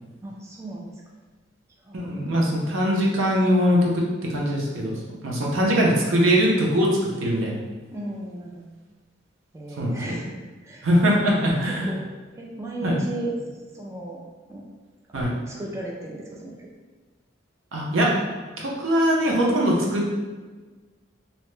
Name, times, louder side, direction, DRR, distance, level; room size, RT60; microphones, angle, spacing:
voice 1, 0.2-0.9 1.9-2.0 7.9-8.7 9.5-10.9 11.2-11.4 11.6-12.0 12.3-13.4 13.7-14.2 14.5-14.6 15.1-16.7, right 1 dB, 15° right, -2 dB, 0.3 m, -35 dB
voice 2, 1.9-6.9 7.2-7.6 9.8-10.2 10.8-11.9 12.8-13.0 15.1-15.3 17.7-18.1 18.6-20.1, equal, 90° right, -3 dB, 0.7 m, -22 dB
2.8 x 2.1 x 3.1 m, 1.3 s
head